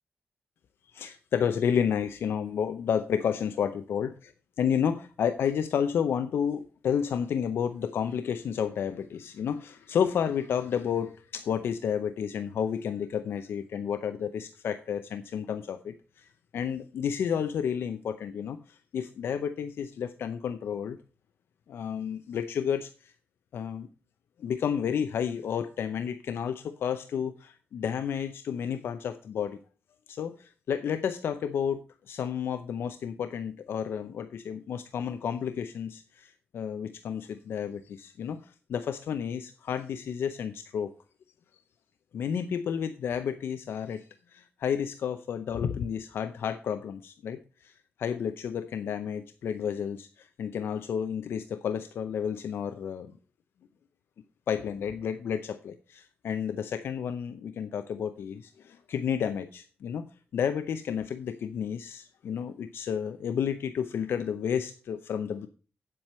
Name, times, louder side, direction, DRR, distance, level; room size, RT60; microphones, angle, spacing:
voice 1, 0.9-4.3 4.6-16.3 16.5-21.0 21.7-23.1 23.5-23.9 24.4-29.6 30.1-31.8 32.1-40.9 42.1-53.1 54.5-60.0 60.3-65.5, left 8 dB, 75° left, 10 dB, 0.6 m, -31 dB
9.1 x 7.7 x 4.3 m, 0.36 s
wide cardioid pair, 165°, 4 cm